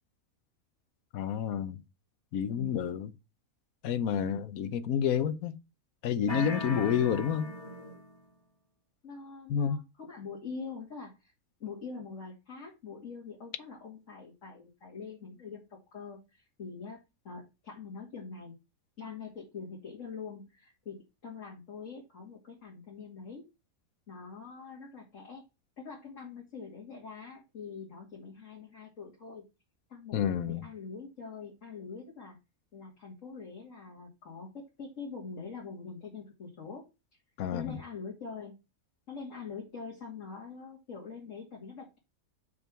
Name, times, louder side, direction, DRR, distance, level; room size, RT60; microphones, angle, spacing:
voice 1, 1.1-1.8 2.3-3.1 3.8-5.6 6.0-7.5 9.5-9.8 30.1-30.6 37.4-37.8, left 8 dB, 80° left, 1.2 m, -29 dB
voice 2, 4.1-4.4 9.0-11.3 11.6-17.0 17.2-18.6 19.0-21.0 21.2-23.4 24.1-25.4 25.8-29.4 29.9-32.4 32.7-36.8 37.5-38.5 39.1-42.0, left 5 dB, 60° left, 2.6 m, -44 dB
sound 1, 6.3-8.2, left 1 dB, 25° left, 2.1 m, -37 dB
6.1 x 5.4 x 6.0 m
omnidirectional pair, 1.5 m